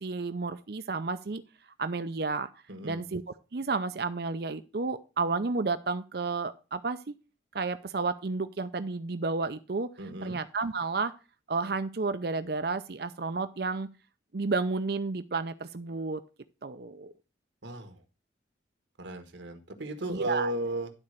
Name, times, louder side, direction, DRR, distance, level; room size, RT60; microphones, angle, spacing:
voice 1, 0.0-1.4 1.8-2.5 2.8-3.2 3.5-7.2 7.5-9.9 10.2-11.1 11.5-13.9 14.3-16.2 16.6-17.1 20.1-20.5, right 4 dB, 55° right, 11 dB, 0.6 m, -31 dB
voice 2, 2.7-3.0 10.0-10.4 17.6-18.0 19.0-20.9, right 1 dB, 80° right, 8 dB, 1.5 m, -35 dB
11.5 x 4.3 x 6.5 m, 0.32 s
head